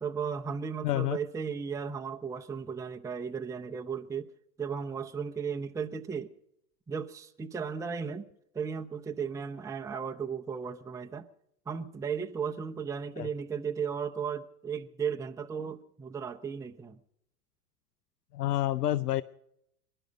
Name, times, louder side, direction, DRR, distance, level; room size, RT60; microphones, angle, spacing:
voice 1, 0.0-4.3 4.6-6.3 6.9-8.3 8.5-11.3 11.7-17.0, right 6 dB, 5° right, 0.8 m, -35 dB
voice 2, 0.8-1.2 13.2-13.3 18.3-19.2, left 14 dB, 80° left, 0.7 m, -28 dB
25.5 x 11.0 x 5.2 m
hypercardioid pair, 95°, 46 cm